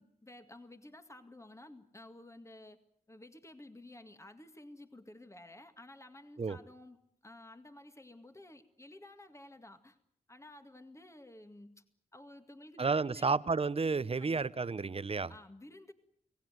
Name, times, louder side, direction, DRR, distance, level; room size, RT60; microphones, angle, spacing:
voice 1, 0.0-2.8 3.1-10.0 10.3-11.8 12.1-13.3 14.2-14.4 15.3-15.9, left 1 dB, 20° left, 8 dB, 2.2 m, -53 dB
voice 2, 12.8-15.3, right 4 dB, 40° right, 16 dB, 1.0 m, -31 dB
25.5 x 17.5 x 9.4 m, 0.71 s
cardioid pair, 50°, 15 cm